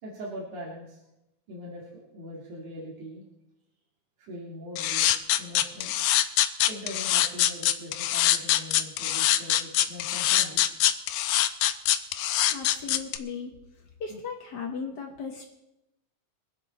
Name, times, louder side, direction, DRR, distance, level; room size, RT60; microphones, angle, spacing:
voice 1, 0.0-1.0 1.5-3.2 4.2-5.1 5.4-6.0 6.7-10.6 11.2-11.3, equal, 80° right, -4 dB, 3.7 m, -41 dB
sound 1, 4.8-13.2, left 13 dB, 90° left, 2.1 m, -23 dB
voice 2, 12.5-13.5 14.0-15.4, left 5 dB, 65° left, 1 dB, 1.0 m, -36 dB
23.0 x 8.2 x 4.2 m, 0.88 s
omnidirectional pair, 3.5 m